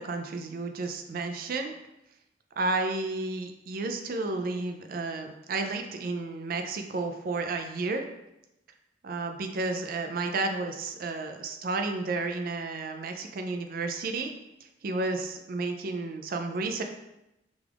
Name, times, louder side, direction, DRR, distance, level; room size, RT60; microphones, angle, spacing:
voice 1, 0.0-1.7 2.6-8.1 9.0-14.3 14.8-16.8, right 3 dB, 55° right, 5 dB, 0.4 m, -32 dB
4.9 x 2.4 x 3.4 m, 0.88 s
head